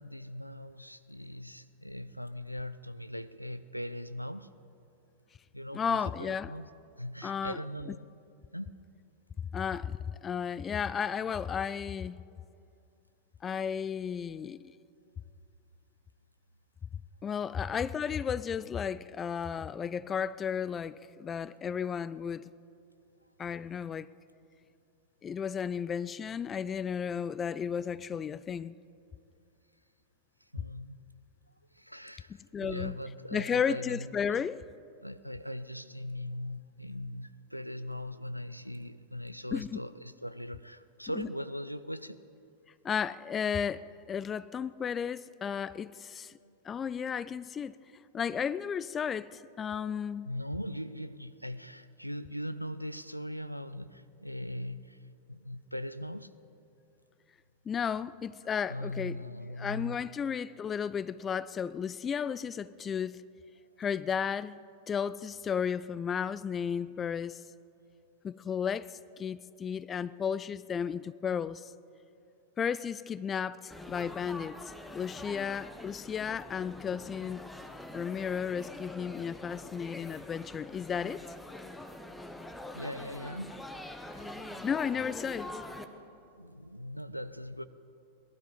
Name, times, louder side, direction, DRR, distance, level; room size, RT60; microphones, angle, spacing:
voice 1, 0.0-4.5 5.5-6.7 7.0-8.1 8.5-8.7 23.2-23.3 30.5-31.0 31.7-34.5 35.0-42.2 46.4-46.6 50.2-55.0 55.3-56.3 58.7-60.0 82.7-83.7 84.0-84.3 86.4-87.6, left 1 dB, 90° left, 0.4 m, -40 dB
voice 2, 5.7-6.5 7.2-7.6 9.5-12.2 13.4-14.7 17.2-22.5 23.4-24.1 25.2-28.8 32.5-33.0 33.3-34.6 39.5-39.8 41.2-41.3 42.8-46.3 46.6-47.8 48.1-50.3 57.7-59.2 59.6-63.2 63.8-64.6 64.9-67.4 68.2-71.7 72.6-74.6 74.9-77.5 77.9-81.2 84.3-85.5, left 7 dB, 20° left, 0.3 m, -33 dB
Laughter / Chatter / Crowd, 73.7-85.8, left 1 dB, 5° left, 0.9 m, -45 dB
19.0 x 12.5 x 5.0 m
figure-of-eight pair, 90°, 0 cm